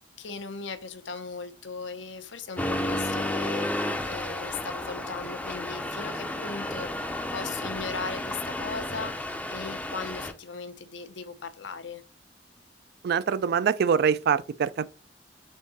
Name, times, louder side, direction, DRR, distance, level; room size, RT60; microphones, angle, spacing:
voice 1, 0.0-12.0, left 4 dB, 80° left, 0.7 m, -38 dB
Accelerating revving vroom, 2.6-10.3, left 1 dB, 10° left, 0.5 m, -32 dB
voice 2, 13.0-14.9, right 7 dB, 60° right, 0.3 m, -24 dB
3.6 x 3.6 x 4.0 m
head